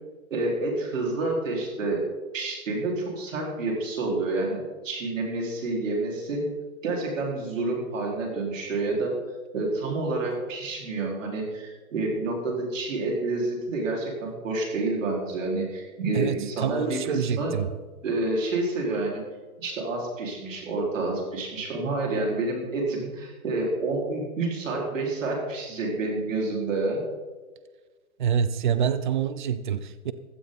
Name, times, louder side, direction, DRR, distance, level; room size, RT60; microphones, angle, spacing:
voice 1, 0.3-2.0 2.3-6.5 6.8-9.2 9.5-17.5 18.0-19.2 19.6-27.0, right 2 dB, 60° right, -1 dB, 4.8 m, -28 dB
voice 2, 16.1-17.7 28.2-30.1, right 8 dB, 35° right, 13 dB, 0.6 m, -26 dB
15.5 x 12.5 x 4.1 m, 1.3 s
hypercardioid pair, 160°, 42 cm